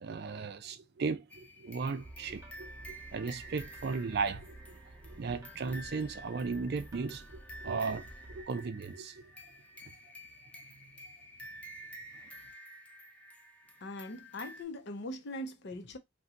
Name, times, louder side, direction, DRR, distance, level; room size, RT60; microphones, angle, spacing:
voice 1, 0.0-9.3, right 4 dB, 55° right, 0.4 m, -36 dB
sound 1, 1.3-14.6, equal, 5° left, 0.4 m, -51 dB
sound 2, 2.0-8.4, right 1 dB, 15° right, 0.7 m, -52 dB
voice 2, 13.8-16.0, left 1 dB, 60° left, 0.6 m, -41 dB
2.8 x 2.2 x 3.6 m
head